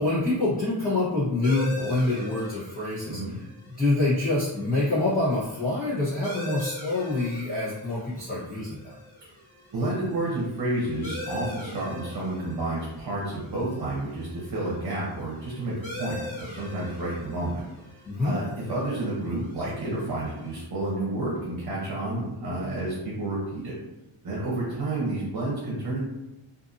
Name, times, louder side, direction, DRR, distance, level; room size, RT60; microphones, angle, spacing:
voice 1, 0.0-3.2 3.8-8.9 18.0-18.4, left 2 dB, 20° left, -12 dB, 0.9 m, -26 dB
sound 1, 1.4-20.6, left 2 dB, 70° left, 1.3 m, -42 dB
voice 2, 3.1-3.4 9.7-17.6 18.2-23.7 24.2-26.0, right 2 dB, 50° right, -5 dB, 0.8 m, -30 dB
2.6 x 2.6 x 2.5 m, 0.95 s
wide cardioid pair, 125°, 48 cm